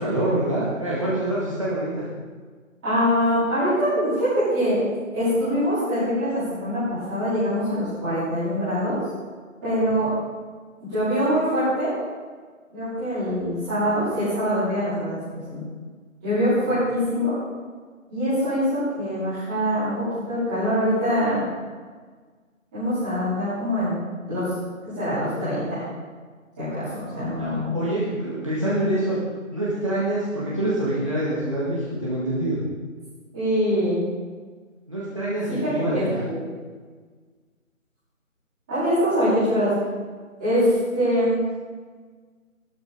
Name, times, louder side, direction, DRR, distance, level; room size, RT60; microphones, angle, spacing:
voice 1, 0.0-2.1 9.9-10.0 16.7-16.8 27.4-29.2 29.5-32.6 34.9-36.3, right 1 dB, 25° right, -9 dB, 1.8 m, -26 dB
voice 2, 2.8-4.8 5.1-9.0 9.6-10.1 10.8-11.9 12.7-15.6 16.2-17.3 18.1-21.4 22.7-24.0 24.3-24.4 24.9-25.8 26.6-27.7 33.3-34.0 35.5-36.4 38.7-39.7 40.4-41.4, equal, 5° right, -21 dB, 3.4 m, -24 dB
16.0 x 12.5 x 4.0 m, 1.5 s
figure-of-eight pair, 180°, 41 cm